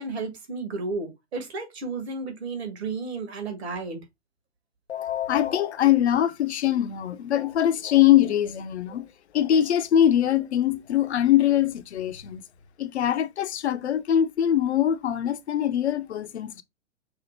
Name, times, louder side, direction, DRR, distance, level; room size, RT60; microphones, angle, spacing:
voice 1, 0.0-4.0, right 3 dB, 65° right, 1.6 m, -33 dB
voice 2, 4.9-9.1 9.3-12.4 12.8-16.6, left 11 dB, 70° left, 0.7 m, -22 dB
5.7 x 2.1 x 4.2 m
figure-of-eight pair, 110°, 35 cm